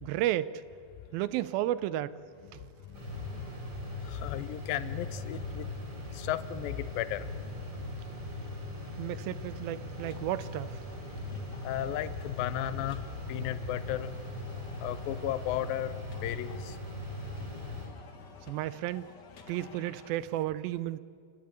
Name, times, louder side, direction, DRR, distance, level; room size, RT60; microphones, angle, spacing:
voice 1, 0.0-0.5 1.1-2.2 9.0-10.7 18.5-19.1 19.5-21.0, right 14 dB, 85° right, 15 dB, 2.5 m, -32 dB
sound 1, 2.9-17.9, left 1 dB, 40° right, 5.3 m, -40 dB
voice 2, 4.1-5.7 6.1-7.3 11.6-13.0 13.3-14.1 14.8-15.9 16.2-16.8, left 12 dB, 85° left, 13 dB, 2.5 m, -34 dB
sound 2, 9.9-20.2, left 5 dB, 60° left, 1.1 m, -54 dB
29.5 x 11.5 x 9.0 m, 2.3 s
omnidirectional pair, 4.1 m